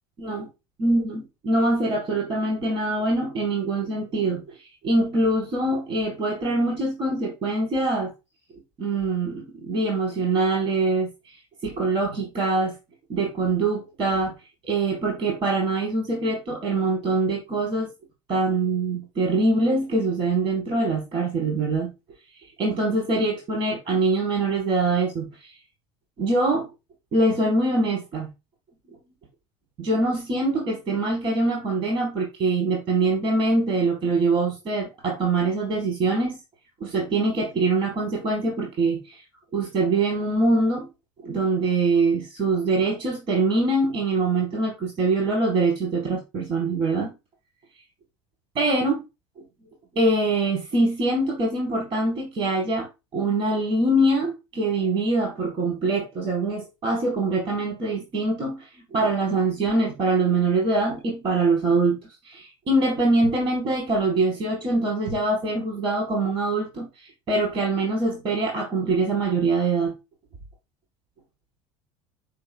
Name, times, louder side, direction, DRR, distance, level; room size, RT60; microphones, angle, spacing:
voice 1, 0.8-4.4 4.8-8.1 8.8-11.3 11.6-12.7 13.1-14.3 14.6-17.9 18.3-21.9 22.6-25.5 26.2-26.7 27.1-28.3 29.8-36.4 36.8-39.2 39.5-40.9 41.2-47.1 48.5-49.0 49.9-52.9 53.1-62.0 62.2-66.9 67.3-69.9, right 2 dB, 40° right, 4.4 m, -23 dB
9.7 x 5.0 x 2.3 m
cardioid pair, 130°, 13 cm